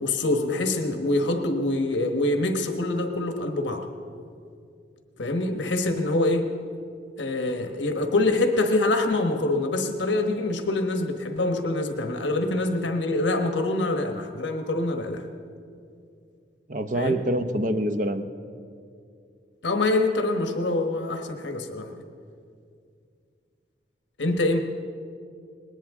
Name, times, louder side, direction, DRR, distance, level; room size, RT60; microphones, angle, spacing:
voice 1, 0.0-3.9 5.2-6.5 7.2-15.2 16.9-17.2 19.6-21.9 24.2-24.6, left 2 dB, 75° left, 5 dB, 1.2 m, -25 dB
voice 2, 16.7-18.3, right 1 dB, 45° right, 8 dB, 0.8 m, -25 dB
20.0 x 19.0 x 3.6 m, 2.3 s
head